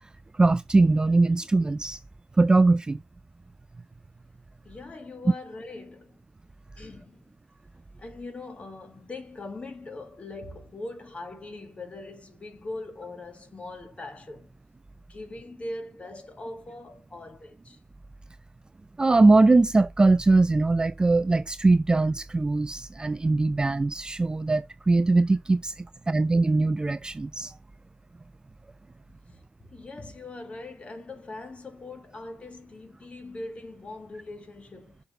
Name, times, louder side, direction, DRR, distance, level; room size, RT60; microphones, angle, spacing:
voice 1, 0.3-2.0 2.4-3.0 19.0-27.5, right 3 dB, 20° right, 0.4 m, -21 dB
voice 2, 4.6-6.2 6.8-7.3 8.0-14.5 15.1-17.8 29.3-29.4 29.7-35.0, left 2 dB, 30° left, 2.0 m, -41 dB
6.5 x 4.0 x 5.3 m
hypercardioid pair, 45°, 4 cm